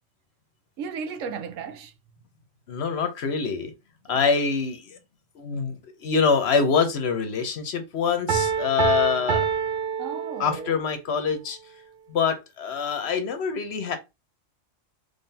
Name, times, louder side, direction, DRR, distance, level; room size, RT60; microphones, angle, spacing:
voice 1, 0.8-1.9 4.1-4.2 10.0-10.7, right 6 dB, 80° right, 1.0 m, -35 dB
voice 2, 2.7-3.7 4.1-5.0 5.4-9.5 10.4-11.6 12.1-14.0, left 5 dB, 60° left, 0.9 m, -25 dB
Piano, 8.3-10.9, right 7 dB, 50° right, 0.9 m, -26 dB
3.7 x 3.3 x 2.7 m
omnidirectional pair, 1.3 m